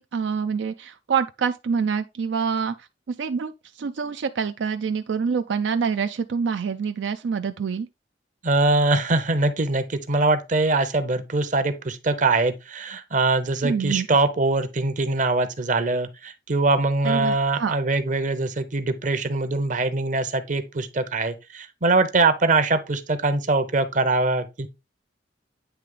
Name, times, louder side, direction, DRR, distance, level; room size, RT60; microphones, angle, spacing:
voice 1, 0.0-7.9 13.6-14.1 17.0-17.8, right 6 dB, 80° right, 0.4 m, -26 dB
voice 2, 8.4-24.7, right 3 dB, 45° right, 0.8 m, -23 dB
9.1 x 3.3 x 3.7 m
head